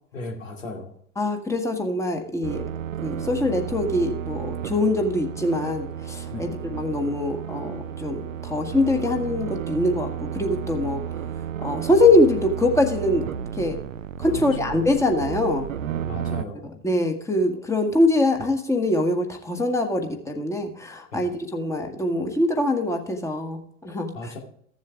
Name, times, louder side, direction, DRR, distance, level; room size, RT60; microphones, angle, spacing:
voice 1, 0.1-1.0 6.3-6.5 14.3-14.4 16.0-16.7 21.1-21.2 24.1-24.4, left 2 dB, 80° left, 1 dB, 2.7 m, -36 dB
voice 2, 1.1-2.6 3.0-11.0 11.6-13.3 13.6-13.8 14.2-15.7 16.6-24.3, left 2 dB, 5° left, 4 dB, 1.7 m, -23 dB
sound 1, 2.4-16.4, right 9 dB, 80° right, 0.6 m, -33 dB
15.0 x 7.3 x 3.5 m, 0.65 s
figure-of-eight pair, 85°, 38 cm